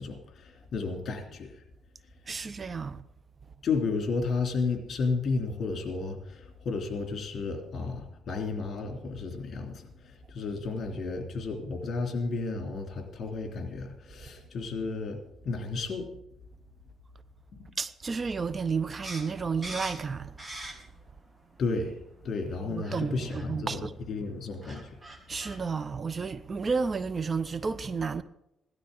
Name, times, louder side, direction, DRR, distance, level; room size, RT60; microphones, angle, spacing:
voice 1, 0.0-1.5 3.6-9.8 10.3-16.1 21.6-22.0 22.2-24.9, left 4 dB, 55° left, 3.1 m, -32 dB
voice 2, 2.3-3.0 17.8-20.4 22.6-23.9 25.3-28.2, right 5 dB, 35° right, 0.6 m, -32 dB
sound 1, 19.0-21.1 21.5-22.2 22.8-23.0 23.3-23.5 24.3-24.4 24.6-25.6, right 1 dB, 20° right, 2.4 m, -42 dB
17.0 x 12.5 x 3.9 m
cardioid pair, 90°, 0 cm